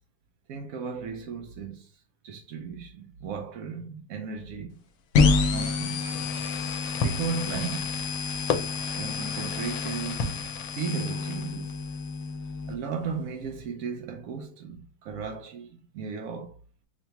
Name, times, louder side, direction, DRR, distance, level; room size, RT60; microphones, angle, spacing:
voice 1, 0.5-4.8 5.5-6.1 7.0-8.0 8.9-10.3 10.7-11.8 12.7-16.6, right 6 dB, 75° right, 0.8 m, -36 dB
sound 1, 5.1-12.7, left 4 dB, 65° left, 0.8 m, -28 dB
Fireworks, 6.1-11.7, left 5 dB, 85° left, 1.4 m, -35 dB
5.4 x 2.2 x 2.9 m
omnidirectional pair, 2.0 m